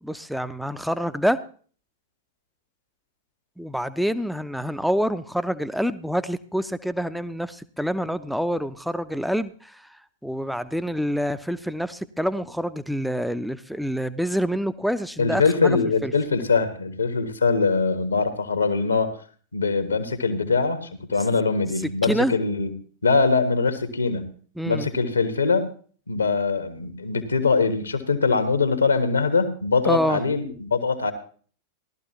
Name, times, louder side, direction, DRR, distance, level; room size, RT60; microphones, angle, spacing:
voice 1, 0.0-1.4 3.6-9.8 10.2-16.1 22.1-22.3 24.6-24.9 29.8-30.2, equal, ahead, 14 dB, 0.6 m, -26 dB
voice 2, 15.2-19.1 19.5-22.7 23.0-24.3 24.6-25.7 26.1-31.1, left 4 dB, 75° left, 8 dB, 1.4 m, -22 dB
17.5 x 12.5 x 2.9 m, 0.44 s
figure-of-eight pair, 90°, 0 cm